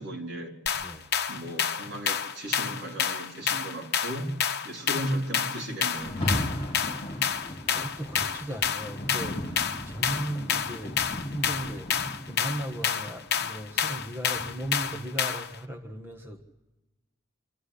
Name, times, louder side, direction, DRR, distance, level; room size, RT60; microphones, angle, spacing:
voice 1, 0.0-0.6 1.3-4.3 4.6-6.5, right 1 dB, 55° right, 3.7 m, -35 dB
sound 1, 0.7-15.6, left 7 dB, 50° left, 1.1 m, -29 dB
voice 2, 0.7-1.1 7.4-16.4, right 1 dB, 10° right, 1.4 m, -37 dB
Rain, 5.9-15.0, left 1 dB, 25° left, 3.7 m, -36 dB
25.5 x 14.0 x 9.8 m
head